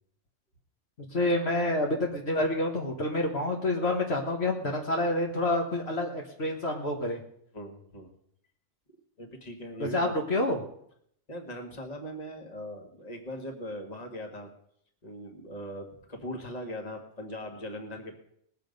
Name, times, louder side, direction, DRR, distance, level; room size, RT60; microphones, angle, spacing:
voice 1, 1.1-7.2 9.9-10.6, left 1 dB, 60° left, 1 dB, 1.7 m, -28 dB
voice 2, 7.5-8.1 9.2-10.2 11.3-14.5 15.0-18.2, equal, 35° left, 3 dB, 1.8 m, -40 dB
20.0 x 7.5 x 5.3 m, 0.69 s
omnidirectional pair, 1.2 m